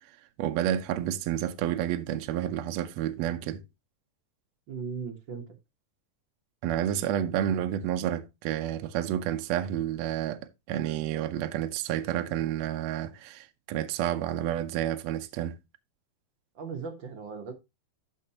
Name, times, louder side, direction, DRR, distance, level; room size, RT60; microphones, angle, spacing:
voice 1, 0.4-3.6 6.6-10.4 10.7-15.6, right 11 dB, 75° right, 1.8 m, -30 dB
voice 2, 4.7-5.5 16.5-17.5, right 5 dB, 50° right, 1.6 m, -37 dB
12.5 x 5.6 x 2.8 m
omnidirectional pair, 3.5 m